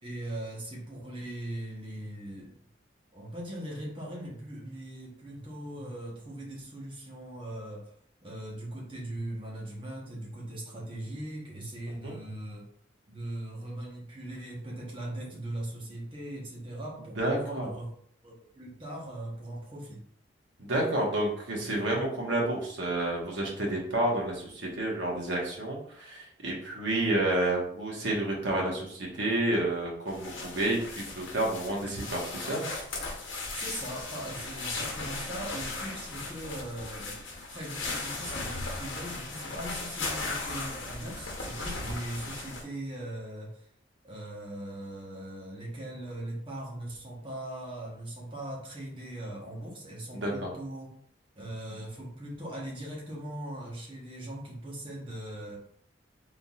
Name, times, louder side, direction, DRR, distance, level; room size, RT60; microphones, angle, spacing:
voice 1, 0.0-2.6 3.1-7.9 8.2-12.7 13.1-17.9 18.2-20.0 33.5-43.7 44.0-50.9 51.3-55.6, right 1 dB, 25° right, -3 dB, 1.2 m, -40 dB
voice 2, 17.2-17.7 20.6-32.7 50.1-50.5, right 1 dB, 75° right, -2 dB, 1.3 m, -30 dB
sound 1, 30.1-42.6, left 3 dB, 85° left, 1.0 m, -37 dB
4.1 x 3.8 x 2.4 m, 0.64 s
head